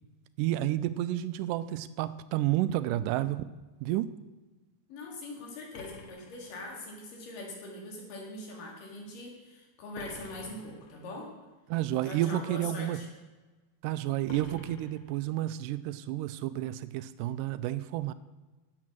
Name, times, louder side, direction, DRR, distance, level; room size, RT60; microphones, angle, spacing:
voice 1, 0.4-3.5 3.8-4.1 11.7-13.0 13.8-18.1, right 14 dB, 85° right, 14 dB, 2.1 m, -30 dB
voice 2, 4.9-11.3 12.1-13.1, left 2 dB, 90° left, -1 dB, 4.0 m, -42 dB
sound 1, 5.7-7.1 9.9-11.1 14.3-15.6, left 3 dB, 60° left, 1.8 m, -48 dB
11.0 x 8.6 x 6.2 m, 1.2 s
omnidirectional pair, 3.7 m